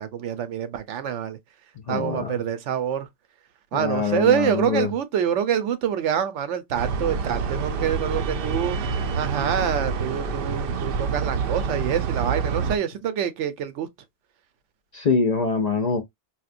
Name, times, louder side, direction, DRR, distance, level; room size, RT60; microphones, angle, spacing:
voice 1, 0.0-1.4 1.9-3.1 3.7-8.8 9.2-13.9, right 9 dB, 85° right, 1.0 m, -26 dB
voice 2, 1.9-2.4 3.7-4.9 14.9-16.0, left 5 dB, 55° left, 0.4 m, -24 dB
sound 1, 6.7-12.8, right 5 dB, 60° right, 0.6 m, -27 dB
4.2 x 2.1 x 2.5 m
omnidirectional pair, 1.2 m